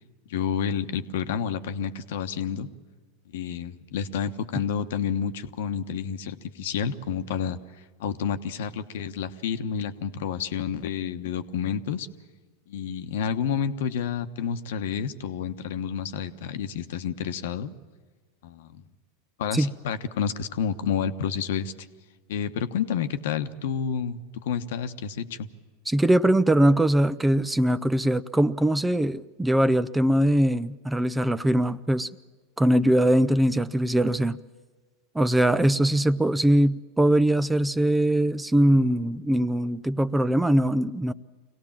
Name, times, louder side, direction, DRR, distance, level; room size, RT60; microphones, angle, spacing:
voice 1, 0.3-2.7 3.3-7.6 8.0-12.1 12.7-17.7 18.4-18.8 19.4-21.9 22.3-25.5, left 7 dB, 75° left, 9 dB, 1.1 m, -29 dB
voice 2, 25.9-32.1 32.6-34.4 35.1-41.1, right 1 dB, 10° right, 16 dB, 0.6 m, -21 dB
24.0 x 17.5 x 7.3 m, 1.4 s
hypercardioid pair, 105°, 0 cm